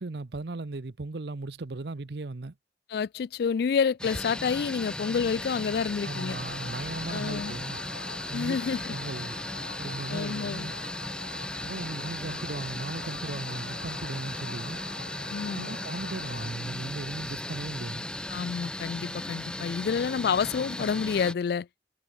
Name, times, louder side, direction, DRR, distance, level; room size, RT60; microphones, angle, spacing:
voice 1, 0.0-2.5 6.0-7.8 8.3-8.6 8.9-9.4 9.8-10.7 11.6-14.8 15.5-18.1, right 2 dB, 60° right, 0.7 m, -37 dB
voice 2, 2.9-6.4 7.1-7.5 8.3-8.9 10.1-10.7 15.3-15.7 18.3-21.7, left 6 dB, 60° left, 0.3 m, -29 dB
sound 1, 4.0-21.3, left 1 dB, 5° left, 0.5 m, -37 dB
sound 2, 6.1-16.5, left 4 dB, 75° left, 2.4 m, -44 dB
head